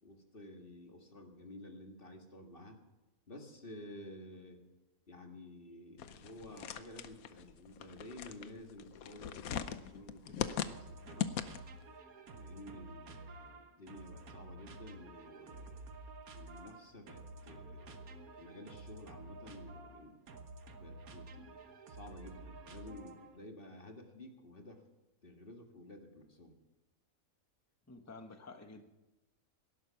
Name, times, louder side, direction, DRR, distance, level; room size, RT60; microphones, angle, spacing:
voice 1, 0.0-2.8 3.3-4.6 5.1-11.5 12.3-15.8 16.3-20.2 20.8-21.6 21.9-24.8 25.2-26.6, left 1 dB, 40° left, 4 dB, 2.0 m, -52 dB
sound 1, 6.0-11.8, left 9 dB, 85° left, 1.2 m, -40 dB
sound 2, 10.7-23.4, right 2 dB, 85° right, 1.6 m, -51 dB
voice 2, 27.9-28.9, left 3 dB, 10° left, 6 dB, 1.0 m, -51 dB
18.0 x 11.5 x 5.8 m, 1.0 s
omnidirectional pair, 1.5 m